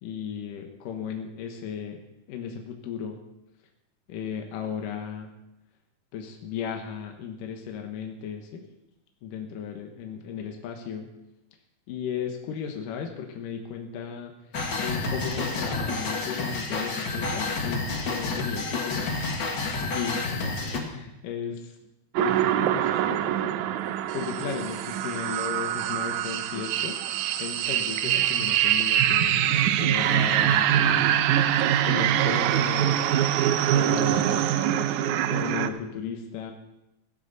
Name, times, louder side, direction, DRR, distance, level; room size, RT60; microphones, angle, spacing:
voice 1, 0.0-2.0 2.3-3.2 4.1-5.3 6.1-8.6 9.2-11.1 11.9-14.3 14.8-19.1 19.9-21.8 22.2-23.6 24.1-27.0 27.4-31.2 31.8-33.1 33.7-34.5 35.2-36.5, left 7 dB, 75° left, 3 dB, 2.8 m, -35 dB
sound 1, 14.5-20.8, left 3 dB, 45° left, 1.7 m, -29 dB
sound 2, 22.1-35.7, right 11 dB, 75° right, 1.9 m, -24 dB
16.5 x 15.0 x 4.1 m, 0.93 s
omnidirectional pair, 3.9 m